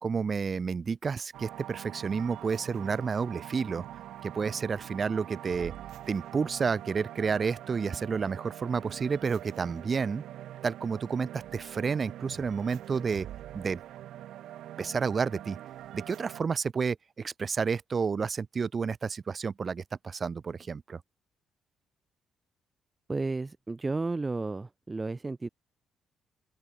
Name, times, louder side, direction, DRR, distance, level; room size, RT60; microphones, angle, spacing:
voice 1, 0.0-3.8 4.2-5.7 6.1-10.2 10.6-13.3 13.5-13.8 14.8-15.6 15.9-21.0, right 5 dB, 40° right, 1.8 m, -30 dB
sound 1, 1.3-16.4, right 12 dB, 80° right, 5.9 m, -44 dB
voice 2, 23.1-25.5, right 3 dB, 20° right, 1.3 m, -32 dB
open air
cardioid pair, 90°, 0 cm